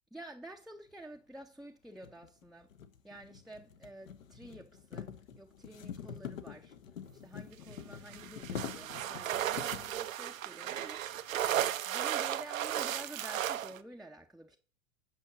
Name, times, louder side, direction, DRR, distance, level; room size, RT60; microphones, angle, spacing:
voice 1, 0.1-2.7 3.0-5.1 5.4-6.8 7.1-11.3 11.6-14.6, right 1 dB, ahead, 0.6 m, -50 dB
sound 1, 1.1-1.2 2.0-10.0, left 7 dB, 80° left, 1.3 m, -45 dB
sound 2, 8.1-13.8, right 11 dB, 80° right, 0.8 m, -35 dB
9.0 x 5.8 x 6.1 m
hypercardioid pair, 100°, 39 cm